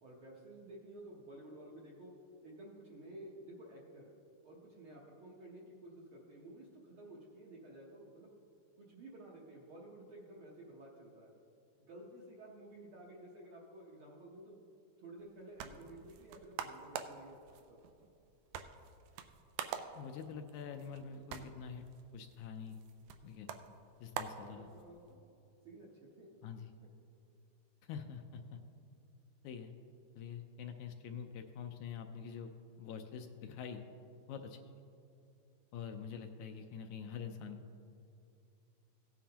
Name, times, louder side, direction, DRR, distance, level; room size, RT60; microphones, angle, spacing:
voice 1, 0.0-2.1 2.4-4.1 4.4-8.3 8.8-11.3 11.8-14.6 15.0-17.4 17.7-17.8 24.3-25.2 25.6-26.4, right 1 dB, 65° right, -4 dB, 1.4 m, -53 dB
sound 1, 15.2-25.1, right 8 dB, 85° right, 2.2 m, -47 dB
voice 2, 20.0-21.8 22.1-22.8 23.2-23.5 24.0-24.7 26.4-26.7 27.8-28.6 29.4-29.7 30.1-32.5 32.8-33.8 34.3-34.7 35.7-37.6, left 6 dB, 80° left, 6 dB, 1.8 m, -45 dB
16.5 x 9.2 x 2.9 m, 2.7 s
omnidirectional pair, 3.6 m